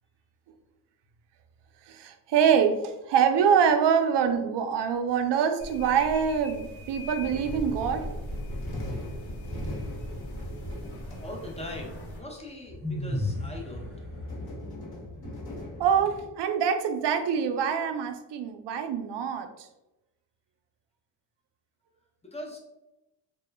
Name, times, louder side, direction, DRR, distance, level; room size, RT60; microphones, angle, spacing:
voice 1, 1.9-8.1 15.8-19.7, right 7 dB, 60° right, 6 dB, 0.5 m, -25 dB
sound 1, 5.6-12.2, equal, 75° left, 0.8 m, -41 dB
sound 2, 7.2-16.2, left 1 dB, 50° left, 1.0 m, -39 dB
voice 2, 11.2-13.9 22.2-22.6, left 1 dB, 15° left, -1 dB, 0.6 m, -40 dB
sound 3, 12.8-13.7, left 1 dB, 30° right, 0.7 m, -30 dB
2.2 x 2.0 x 3.3 m, 0.94 s
cardioid pair, 75°, 47 cm